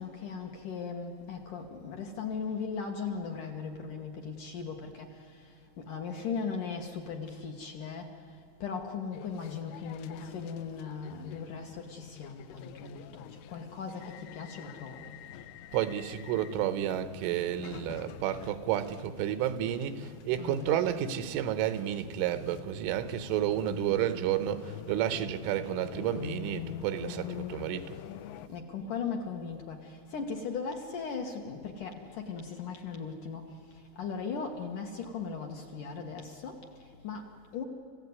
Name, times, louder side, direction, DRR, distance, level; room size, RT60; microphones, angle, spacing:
voice 1, 0.0-15.1 20.4-20.8 28.5-37.6, left 5 dB, 60° left, 2.3 m, -38 dB
sound 1, 9.1-28.5, left 11 dB, 90° left, 3.4 m, -46 dB
voice 2, 15.7-28.0, right 11 dB, 85° right, 3.7 m, -31 dB
29.5 x 16.0 x 9.6 m
omnidirectional pair, 5.5 m